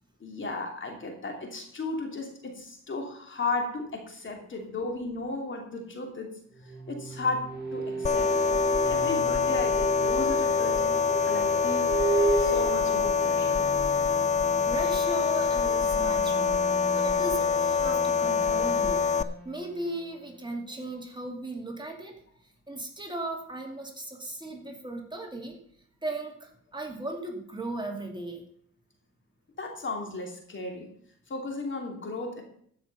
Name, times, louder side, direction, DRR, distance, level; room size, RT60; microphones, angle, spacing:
voice 1, 0.2-6.3 6.6-11.0 11.2-12.1 12.4-13.6 29.6-30.9 31.3-32.4, left 3 dB, 40° left, 3 dB, 2.9 m, -35 dB
sound 1, 6.5-21.2, right 2 dB, 35° right, 5.1 m, -34 dB
sound 2, 8.0-19.2, left 5 dB, 25° left, 0.6 m, -25 dB
voice 2, 14.6-16.6 16.9-19.1 19.4-22.2 22.7-25.6 26.0-28.4, right 2 dB, 15° right, 1 dB, 2.5 m, -37 dB
14.0 x 6.3 x 5.4 m, 0.64 s
cardioid pair, 90°, 30 cm